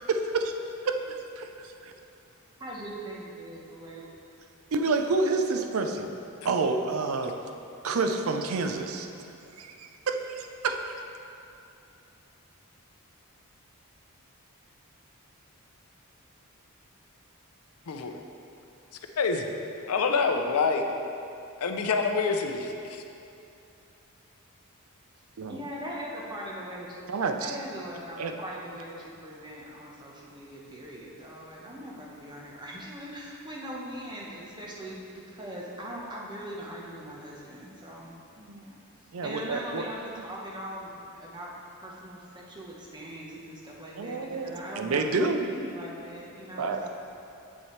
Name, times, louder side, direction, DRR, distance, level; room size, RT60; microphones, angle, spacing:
voice 1, 0.1-0.5 0.8-1.9 4.0-4.1 4.7-6.1 6.4-7.3 7.8-9.1 9.6-10.9 25.4-25.6 27.1-27.6 28.2-28.3 39.1-39.8 44.0-45.5 46.6-46.9, right 3 dB, 65° right, 5 dB, 0.5 m, -29 dB
voice 2, 2.6-4.1 25.5-38.8 39.2-41.5 41.8-46.9, equal, 20° right, -4 dB, 1.0 m, -41 dB
voice 3, 17.9-18.2 19.2-19.5 19.9-20.8 21.6-23.0, left 4 dB, 80° left, 5 dB, 0.6 m, -26 dB
7.4 x 7.1 x 3.2 m, 2.7 s
head